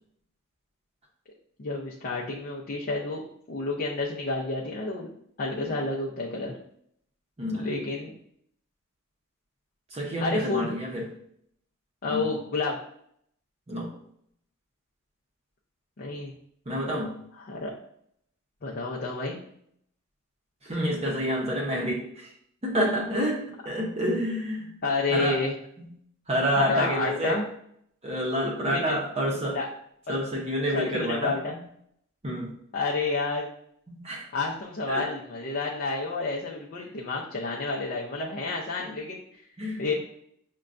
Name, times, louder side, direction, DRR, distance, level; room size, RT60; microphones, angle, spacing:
voice 1, 1.6-5.1 5.4-6.5 7.5-8.1 10.2-10.7 12.0-12.8 16.0-16.3 17.4-17.7 18.6-19.4 24.8-25.5 26.5-27.4 28.7-29.0 29.5-29.7 30.1-30.2 30.7-31.5 32.7-33.5 34.3-39.4 39.8-39.9, left 3 dB, 45° left, -3 dB, 0.5 m, -30 dB
voice 2, 7.4-7.7 9.9-11.0 12.1-12.2 13.7-13.9 16.7-17.2 20.6-22.3 22.6-24.7 25.1-25.4 25.8-25.9 26.3-27.4 28.0-29.6 30.1-31.3 32.2-32.5 33.9-34.3 34.9-35.1 39.6-39.9, equal, 30° right, -3 dB, 0.7 m, -28 dB
6.4 x 2.2 x 2.4 m, 0.69 s
head